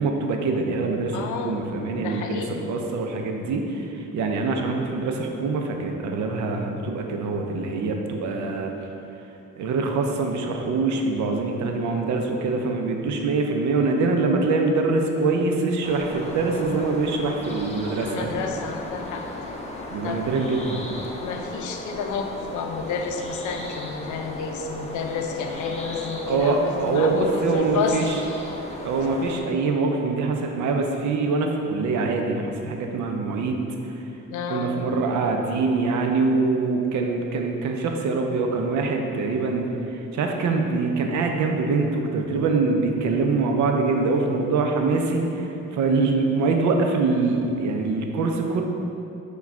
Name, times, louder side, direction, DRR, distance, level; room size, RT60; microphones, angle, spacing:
voice 1, 0.0-8.7 9.6-18.5 19.9-20.9 26.3-28.2 28.8-33.9 34.5-39.7 39.9-48.6, right 3 dB, 70° right, 3 dB, 0.5 m, -24 dB
voice 2, 1.1-1.6 2.0-2.7 18.0-19.2 20.0-20.2 21.2-28.1 34.3-34.7, left 5 dB, 75° left, 3 dB, 0.5 m, -30 dB
sound 1, 15.8-29.4, left 1 dB, 20° left, 0.6 m, -36 dB
4.6 x 2.3 x 4.5 m, 2.9 s
cardioid pair, 90°, 30 cm